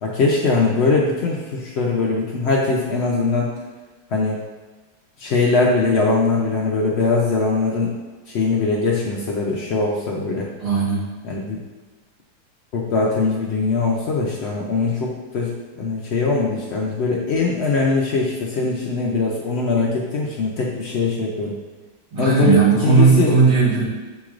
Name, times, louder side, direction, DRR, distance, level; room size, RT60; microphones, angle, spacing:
voice 1, 0.0-3.5 4.1-4.4 5.2-7.9 8.3-10.5 11.2-11.6 12.7-21.5 22.2-23.3, left 3 dB, 85° left, -2 dB, 0.5 m, -21 dB
voice 2, 10.6-11.1 22.1-23.8, right 5 dB, 75° right, -9 dB, 2.3 m, -16 dB
6.5 x 3.0 x 2.4 m, 1.3 s
omnidirectional pair, 1.8 m